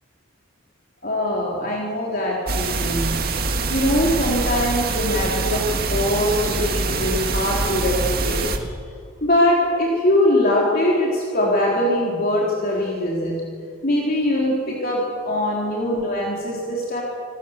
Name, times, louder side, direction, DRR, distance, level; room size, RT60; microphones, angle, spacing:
voice 1, 1.0-3.2 3.7-8.7 9.2-13.4 13.8-17.0, left 1 dB, 45° left, -3 dB, 3.6 m, -22 dB
sound 1, 2.5-8.6, right 3 dB, 45° right, 2.0 m, -24 dB
27.5 x 17.5 x 7.3 m, 2.3 s
head